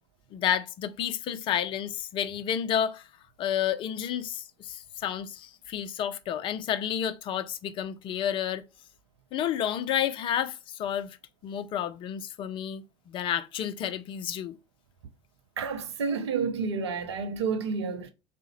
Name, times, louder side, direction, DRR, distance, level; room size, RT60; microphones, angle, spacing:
voice 1, 0.3-3.1 3.4-8.6 9.3-11.2 11.4-14.6, left 9 dB, 35° left, 0.4 m, -30 dB
voice 2, 15.6-18.1, right 5 dB, 70° right, 0.5 m, -30 dB
3.6 x 2.1 x 2.8 m
figure-of-eight pair, 70°, 14 cm